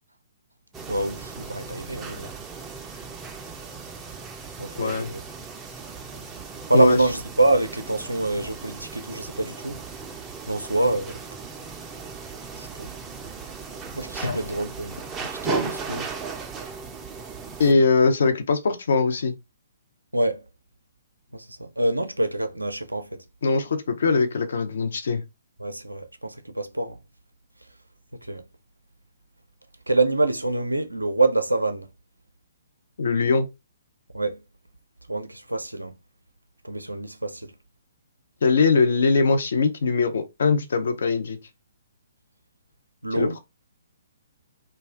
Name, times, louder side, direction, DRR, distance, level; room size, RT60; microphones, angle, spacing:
sound 1, 0.7-17.7, right 5 dB, 15° right, 0.4 m, -37 dB
voice 1, 0.9-2.3 4.6-5.2 6.7-9.8 10.5-11.2 12.6-12.9 13.9-15.0 15.2-16.1 17.7-17.9 20.1-20.4 21.3-23.2 25.6-27.0 28.2-28.4 29.9-31.9 34.1-34.4 35.1-35.9 36.6-37.5 43.0-43.4, right 2 dB, 85° right, 0.4 m, -26 dB
voice 2, 4.8-5.1 6.7-7.0 14.2-14.4 17.6-19.3 23.4-25.2 33.0-33.5 38.4-41.4 43.2-43.4, left 4 dB, 60° left, 0.6 m, -21 dB
2.4 x 2.2 x 3.3 m
figure-of-eight pair, 125°, 0 cm